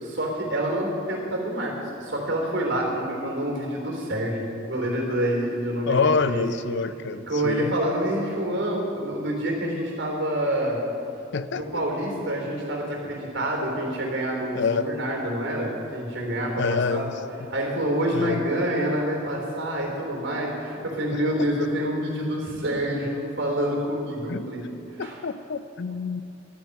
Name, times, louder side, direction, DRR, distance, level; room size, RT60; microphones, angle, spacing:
voice 1, 0.0-6.0 6.2-6.4 7.3-10.8 11.5-17.1 17.5-24.6 25.0-25.2, right 1 dB, 70° right, 0 dB, 3.3 m, -27 dB
voice 2, 5.9-7.7 11.3-11.8 14.5-14.9 16.6-17.1 18.1-18.4 21.1-21.7 24.3-24.4 25.0-26.2, left 5 dB, 65° left, 13 dB, 0.5 m, -27 dB
11.5 x 8.7 x 9.4 m, 2.7 s
head